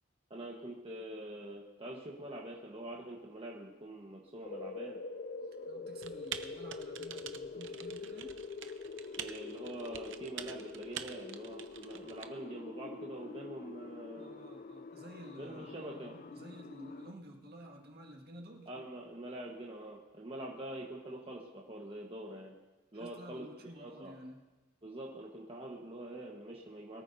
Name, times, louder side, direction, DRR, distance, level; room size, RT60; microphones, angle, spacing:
voice 1, 0.3-5.0 9.2-14.3 15.4-16.2 18.7-22.5 22.9-23.4 23.7-24.2 24.8-27.0, right 1 dB, 30° right, -2 dB, 1.3 m, -45 dB
sound 1, 4.4-17.1, left 3 dB, 45° left, 0.4 m, -45 dB
voice 2, 5.7-8.4 14.2-15.7 16.3-18.7 20.4-20.5 22.9-24.4, equal, 55° right, 0 dB, 1.9 m, -51 dB
Typing, 6.0-12.3, right 9 dB, 70° right, 0.7 m, -46 dB
22.5 x 13.5 x 2.7 m, 1.1 s
head